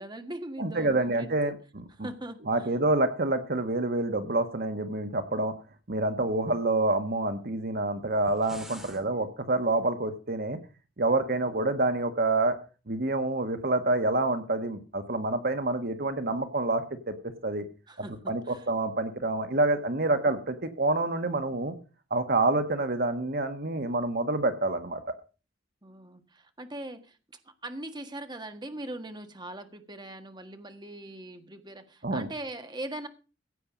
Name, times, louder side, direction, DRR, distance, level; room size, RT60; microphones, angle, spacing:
voice 1, 0.0-1.5 2.0-2.7 8.7-9.1 17.9-18.6 25.8-27.1 27.6-33.1, right 1 dB, 25° right, 7 dB, 1.6 m, -41 dB
voice 2, 0.6-2.1 2.5-5.5 5.9-10.6 11.0-12.6 12.9-17.6 18.3-21.8 22.1-25.0 32.0-32.3, right 2 dB, 55° right, 8 dB, 1.5 m, -27 dB
sound 1, 8.1-9.0, equal, ahead, 2.1 m, -46 dB
16.0 x 8.9 x 5.1 m, 0.34 s
head